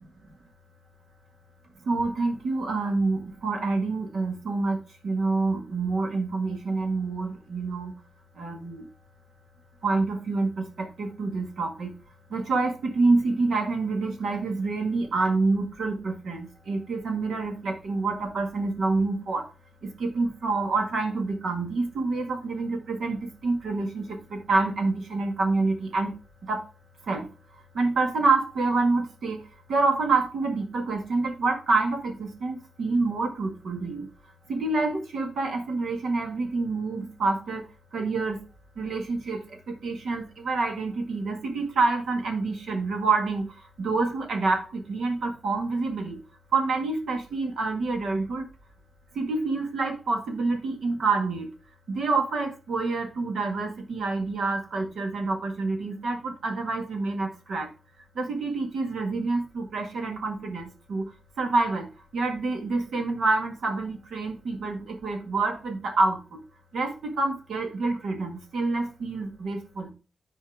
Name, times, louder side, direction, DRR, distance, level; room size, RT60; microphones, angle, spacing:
voice 1, 1.9-7.9 8.4-8.9 9.8-11.9 12.3-19.5 19.8-26.1 26.4-26.6 27.0-27.3 27.5-29.4 29.7-34.1 34.5-38.4 38.8-43.4 43.8-46.2 46.5-48.5 49.2-51.5 51.9-57.7 58.2-66.4 66.7-69.9, right 3 dB, 80° right, 4 dB, 1.8 m, -27 dB
12.5 x 4.5 x 3.5 m, 0.33 s
wide cardioid pair, 120°, 0 cm